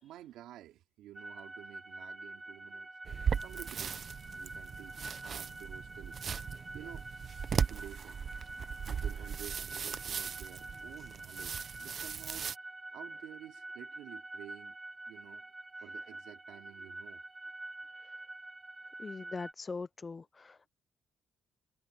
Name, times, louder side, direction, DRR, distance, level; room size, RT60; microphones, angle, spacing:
voice 1, 0.0-2.9 3.4-6.2 6.7-7.1 7.5-8.2 8.9-12.6 12.9-14.8 15.1-15.5 15.8-17.2, right 13 dB, 90° right, 3.5 m, -51 dB
sound 1, 1.1-19.5, right 2 dB, 20° right, 2.8 m, -47 dB
sound 2, 3.0-12.6, right 6 dB, 45° right, 0.9 m, -38 dB
voice 2, 19.0-20.7, left 4 dB, 30° left, 0.5 m, -41 dB
cardioid pair, 90°, 0 cm